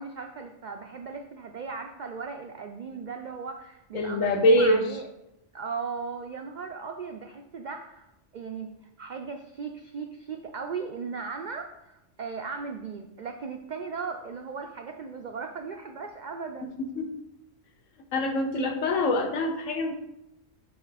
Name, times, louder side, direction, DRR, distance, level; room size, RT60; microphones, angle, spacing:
voice 1, 0.0-5.1 5.5-8.1 8.3-16.7, right 5 dB, 75° right, 5 dB, 0.4 m, -37 dB
voice 2, 3.9-4.9 16.8-17.1 18.1-19.9, left 1 dB, 80° left, 5 dB, 1.2 m, -24 dB
5.6 x 4.8 x 4.0 m, 0.88 s
omnidirectional pair, 1.3 m